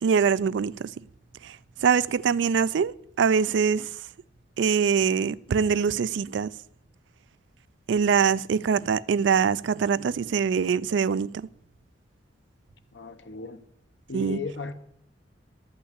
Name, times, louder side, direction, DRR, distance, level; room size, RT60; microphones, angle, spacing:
voice 1, 0.0-0.9 1.4-3.9 4.6-6.5 7.9-11.5 14.1-14.4, right 6 dB, 75° right, 0.4 m, -24 dB
voice 2, 12.9-13.7 14.1-14.7, left 4 dB, 75° left, 0.9 m, -36 dB
12.0 x 5.6 x 8.2 m
head